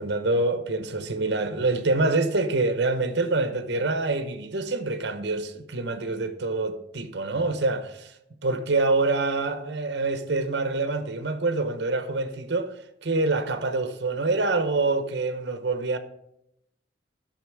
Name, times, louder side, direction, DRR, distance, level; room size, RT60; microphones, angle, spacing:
voice 1, 0.0-8.1 8.4-12.7 13.0-16.0, right 3 dB, 65° right, 0.9 m, -26 dB
12.0 x 5.9 x 4.7 m
head